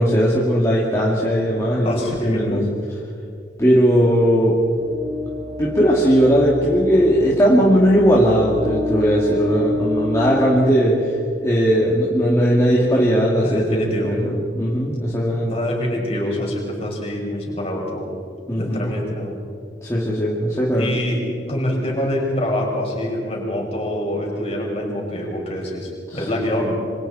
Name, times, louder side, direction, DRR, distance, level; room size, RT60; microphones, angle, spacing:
voice 1, 0.0-2.6 3.6-4.5 5.6-11.2 11.4-15.5 18.5-18.9 19.8-20.9 26.1-26.2, equal, 15° left, -6 dB, 2.7 m, -18 dB
voice 2, 1.8-2.6 13.4-14.1 15.4-18.1 18.6-19.4 20.8-21.2 21.5-26.8, left 1 dB, 35° left, -2 dB, 5.9 m, -25 dB
sound 1, 4.6-11.5, left 2 dB, 75° right, 4.9 m, -28 dB
28.0 x 25.5 x 4.4 m, 2.3 s
head